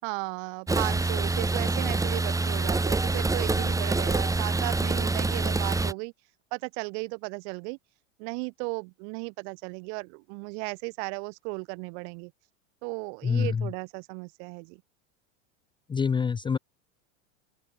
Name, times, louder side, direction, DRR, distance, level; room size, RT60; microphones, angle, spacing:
voice 1, 0.0-6.1 6.5-7.8 8.2-12.3 12.8-14.8, right 38 dB, 60° right, 7.9 m, -35 dB
sound 1, 0.7-5.9, right 3 dB, 10° right, 1.6 m, -26 dB
voice 2, 13.2-13.7 15.9-16.6, left 6 dB, 15° left, 0.5 m, -26 dB
open air
supercardioid pair, 110°, 37 cm